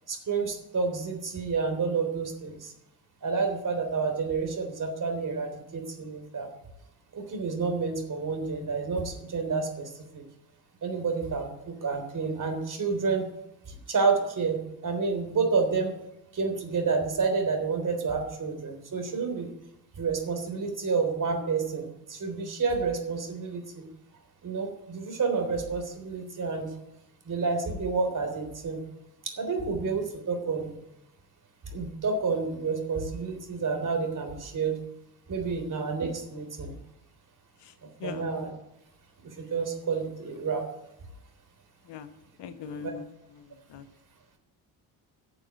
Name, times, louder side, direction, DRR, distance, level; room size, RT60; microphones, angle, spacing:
voice 1, 0.1-2.7 3.2-6.5 7.1-10.2 10.8-13.3 13.7-15.9 16.3-19.5 20.0-23.8 24.4-26.7 27.3-28.8 29.2-30.7 31.7-34.8 35.3-36.7 37.8-38.5 39.2-40.6 42.7-42.9, right 4 dB, 40° right, 6 dB, 3.8 m, -29 dB
voice 2, 42.4-43.0 43.4-43.8, left 7 dB, 60° left, 10 dB, 1.3 m, -40 dB
11.5 x 6.9 x 9.3 m, 0.85 s
hypercardioid pair, 60°, 46 cm